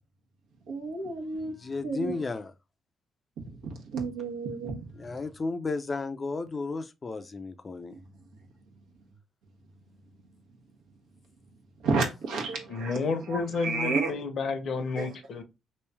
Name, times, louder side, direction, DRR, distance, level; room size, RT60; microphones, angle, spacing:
voice 1, 0.7-1.5 1.8-2.2 3.4-5.1 7.9-8.0 11.8-13.0 13.3-14.1 15.0-15.1, right 4 dB, 90° right, 1.1 m, -31 dB
voice 2, 1.4-2.5 5.0-8.0, left 3 dB, 30° left, 0.5 m, -33 dB
voice 3, 12.7-15.4, left 4 dB, 60° left, 0.8 m, -31 dB
3.1 x 2.7 x 3.3 m
cardioid pair, 90°, 0 cm